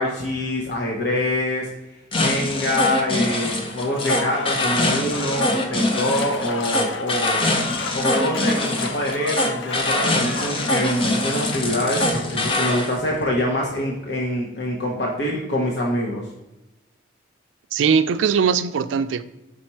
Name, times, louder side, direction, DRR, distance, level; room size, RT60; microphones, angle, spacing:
voice 1, 0.0-1.7 2.2-7.5 7.9-16.2, left 1 dB, 65° left, -2 dB, 0.9 m, -25 dB
sound 1, 2.1-12.9, left 1 dB, 30° left, 0.5 m, -23 dB
Applause / Crowd, 3.7-12.5, left 4 dB, 90° left, 0.5 m, -34 dB
voice 2, 17.7-19.2, right 6 dB, 90° right, 11 dB, 0.4 m, -20 dB
4.9 x 4.2 x 4.5 m, 0.98 s
head